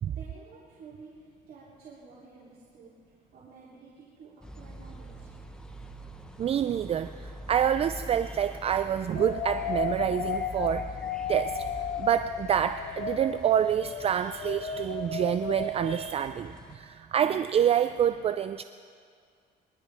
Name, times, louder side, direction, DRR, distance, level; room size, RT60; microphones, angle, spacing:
voice 1, 0.1-5.3, right 4 dB, 65° right, -8 dB, 3.0 m, -51 dB
sound 1, 4.4-16.8, equal, 5° left, 1.0 m, -45 dB
voice 2, 6.4-10.9 11.3-11.7 12.0-18.6, right 9 dB, 35° right, 11 dB, 0.3 m, -27 dB
sound 2, 9.2-16.5, left 6 dB, 55° left, 0.9 m, -35 dB
22.0 x 13.0 x 3.4 m, 2.1 s
cardioid pair, 110°, 17 cm